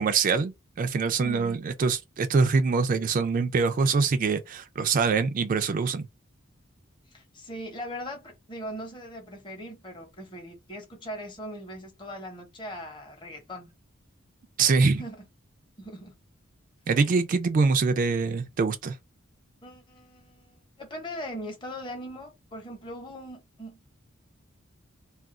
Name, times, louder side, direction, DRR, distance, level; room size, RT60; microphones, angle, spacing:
voice 1, 0.0-6.1 14.6-15.0 16.9-19.0, right 4 dB, 40° right, 0.3 m, -24 dB
voice 2, 1.2-1.7 7.1-13.7 15.0-15.2 15.8-16.1 19.6-24.0, equal, 20° left, 0.8 m, -40 dB
2.4 x 2.2 x 3.6 m
head